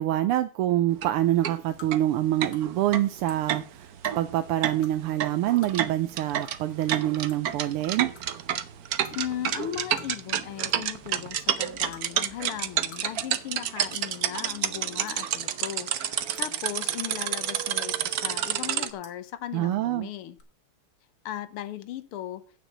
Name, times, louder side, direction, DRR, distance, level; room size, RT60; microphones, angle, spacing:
voice 1, 0.0-8.1 19.5-20.1, right 13 dB, 85° right, 1.6 m, -26 dB
sound 1, 0.9-1.1 1.4-1.6 1.9-2.0 2.4-18.9, right 10 dB, 65° right, 1.0 m, -29 dB
sound 2, 1.8-1.9 2.5-2.7 3.2-3.4 4.0-4.2 4.8-4.9 5.6-5.8 6.4-6.5 6.8-6.9 7.3-7.5 8.2-8.3 9.0-9.2 10.0-10.3 10.6-10.9 11.9-12.0 12.7-13.0 13.3-13.4 13.9-14.1 15.0-15.2 16.0-16.4 17.6-17.9 19.0-19.2 20.3-20.4, left 5 dB, 50° left, 2.3 m, -48 dB
voice 2, 9.1-20.4 21.3-22.4, left 12 dB, 80° left, 1.8 m, -37 dB
9.2 x 6.3 x 7.4 m
omnidirectional pair, 2.4 m